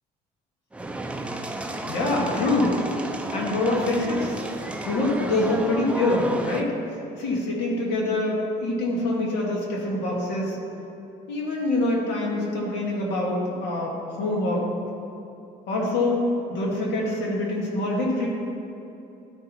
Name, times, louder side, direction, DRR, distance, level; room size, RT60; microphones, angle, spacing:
sound 1, 0.7-6.6, right 1 dB, 5° right, 0.5 m, -32 dB
voice 1, 1.9-2.7 3.3-4.4 4.9-6.7 7.2-10.6 11.3-13.9 14.2-14.6 15.7-16.2 16.5-18.3, left 2 dB, 85° left, -3 dB, 1.9 m, -25 dB
12.5 x 5.6 x 3.1 m, 2.8 s
cardioid pair, 110°, 17 cm